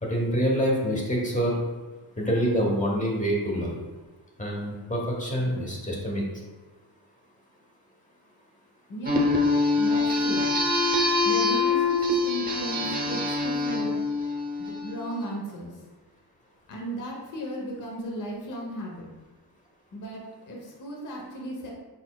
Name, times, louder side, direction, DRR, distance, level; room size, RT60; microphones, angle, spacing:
voice 1, 0.0-1.6 2.2-3.8 4.4-6.2, equal, 20° left, -2 dB, 0.9 m, -26 dB
voice 2, 8.9-9.4 9.7-10.4 11.2-14.0 14.6-15.7 16.7-19.1 19.9-21.7, equal, 50° left, -1 dB, 0.9 m, -35 dB
sound 1, 9.1-15.1, left 3 dB, 20° right, 0.8 m, -24 dB
4.5 x 4.1 x 2.3 m, 1.2 s
wide cardioid pair, 115°, 40 cm